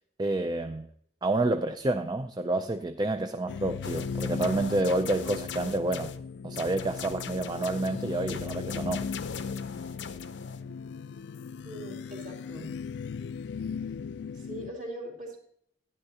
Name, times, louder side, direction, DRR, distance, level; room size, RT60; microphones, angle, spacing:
voice 1, 0.2-0.9 1.2-6.1 6.4-9.0, right 2 dB, 25° right, 0.4 m, -29 dB
sound 1, 3.5-14.7, left 5 dB, 70° left, 0.3 m, -37 dB
sound 2, 3.8-6.2 6.5-10.6, left 6 dB, 90° left, 0.7 m, -41 dB
voice 2, 11.6-12.7 14.3-15.4, right 1 dB, 45° right, 2.6 m, -41 dB
11.0 x 9.8 x 2.8 m
head